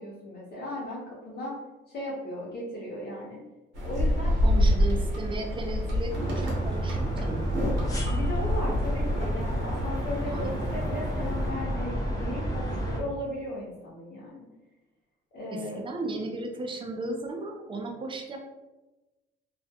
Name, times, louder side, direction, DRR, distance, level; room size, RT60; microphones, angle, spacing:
voice 1, 0.0-1.6 1.9-3.4 3.8-4.4 8.1-14.5 15.3-15.8, left 1 dB, 55° left, -7 dB, 0.8 m, -36 dB
sound 1, 3.7-11.5, equal, 65° right, 0.8 m, -28 dB
voice 2, 4.4-7.7 10.3-10.8 15.5-18.4, right 2 dB, 25° right, 2 dB, 0.5 m, -35 dB
sound 2, 6.1-13.0, right 1 dB, 15° left, 0.6 m, -30 dB
2.3 x 2.2 x 2.7 m, 1.1 s
cardioid pair, 90°, 20 cm